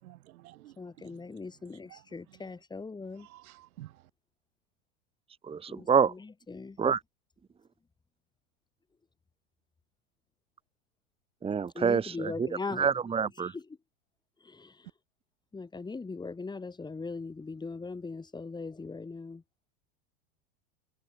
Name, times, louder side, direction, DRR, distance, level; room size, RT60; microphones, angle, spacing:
voice 1, 0.0-1.1 1.9-2.0 3.2-4.1, right 16 dB, 80° right, 6.2 m, -51 dB
voice 2, 0.8-3.3 5.7-6.8 11.8-12.9 13.4-13.6 14.4-14.9 15.5-19.4, left 4 dB, 10° left, 3.5 m, -40 dB
voice 3, 5.4-6.1 6.8-7.0 11.4-12.5 12.8-13.5, right 6 dB, 15° right, 1.7 m, -27 dB
supercardioid pair, 145°, 42 cm